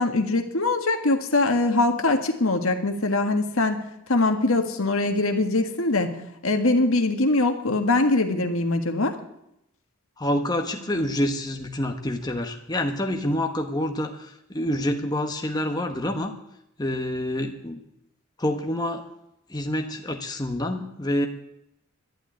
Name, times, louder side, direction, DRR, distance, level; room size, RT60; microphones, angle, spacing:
voice 1, 0.0-3.8 4.1-6.1 6.4-9.1, left 2 dB, 75° left, 5 dB, 1.6 m, -22 dB
voice 2, 10.2-16.3 16.8-17.8 18.4-19.0 19.5-21.3, left 1 dB, 20° left, 4 dB, 1.2 m, -27 dB
11.5 x 11.5 x 9.6 m, 0.80 s
head